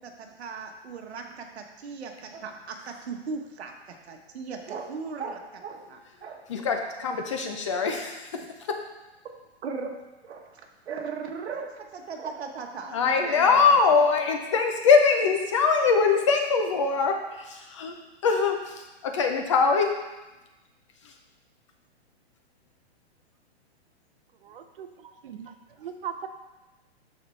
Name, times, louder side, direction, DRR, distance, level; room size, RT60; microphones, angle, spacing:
voice 1, 0.0-6.5 9.6-13.8, right 5 dB, 70° right, 3 dB, 1.3 m, -38 dB
voice 2, 6.5-8.3 12.9-17.9 18.2-19.9, left 5 dB, 30° left, 4 dB, 0.5 m, -22 dB
voice 3, 24.4-26.3, right 8 dB, 55° right, 8 dB, 0.7 m, -39 dB
12.5 x 4.3 x 3.2 m, 1.1 s
hypercardioid pair, 165°, 33 cm